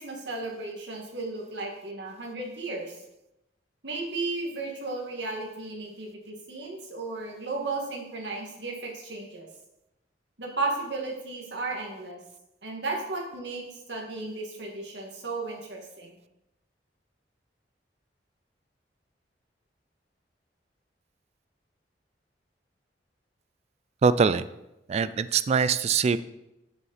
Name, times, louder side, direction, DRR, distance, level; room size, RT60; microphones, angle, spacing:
voice 1, 0.0-3.0 3.8-9.5 10.4-12.2 12.6-16.2, right 3 dB, 75° right, 0 dB, 1.8 m, -34 dB
voice 2, 24.0-24.4 24.9-26.2, right 5 dB, 35° right, 15 dB, 0.3 m, -23 dB
7.0 x 6.8 x 4.1 m, 0.90 s
head